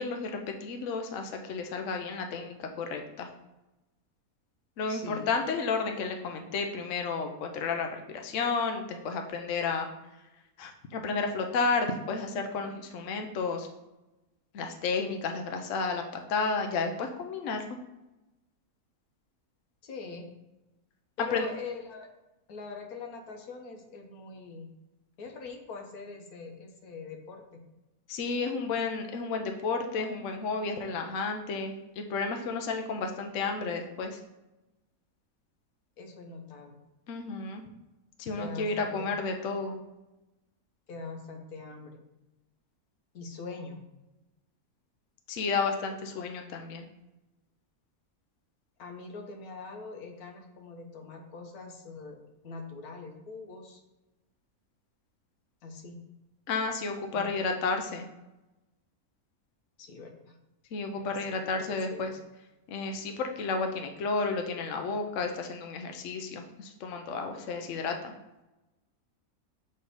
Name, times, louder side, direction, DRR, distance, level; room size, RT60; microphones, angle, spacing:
voice 1, 0.0-3.3 4.8-9.9 10.6-13.7 14.5-16.0 16.3-17.6 21.3-21.5 28.1-34.2 37.1-37.7 38.2-39.8 45.3-46.9 56.5-58.1 60.7-62.1 62.7-68.1, left 4 dB, 65° left, 4 dB, 0.9 m, -32 dB
voice 2, 4.9-5.3 19.8-20.3 21.2-22.1 22.5-24.7 25.2-27.6 36.0-36.8 38.4-39.1 40.9-42.0 43.1-43.8 48.8-53.8 55.6-56.0 57.1-57.3 59.8-60.4 61.0-62.0, left 4 dB, 80° left, 3 dB, 1.4 m, -43 dB
6.5 x 3.3 x 5.2 m, 1.0 s
omnidirectional pair, 1.6 m